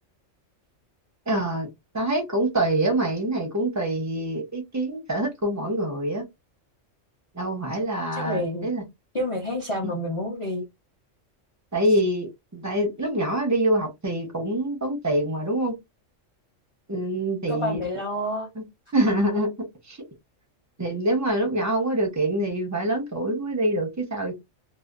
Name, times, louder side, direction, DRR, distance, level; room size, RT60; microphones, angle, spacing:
voice 1, 1.3-1.7 1.9-6.2 7.3-8.8 9.8-9.9 11.7-15.7 16.9-18.0 18.6-18.7 18.9-19.5 19.9-20.0 20.8-24.3, right 1 dB, 20° right, 0.4 m, -25 dB
voice 2, 8.1-8.7 9.1-10.6 17.5-18.5, left 1 dB, 40° left, 0.4 m, -29 dB
2.7 x 2.0 x 2.3 m
omnidirectional pair, 1.3 m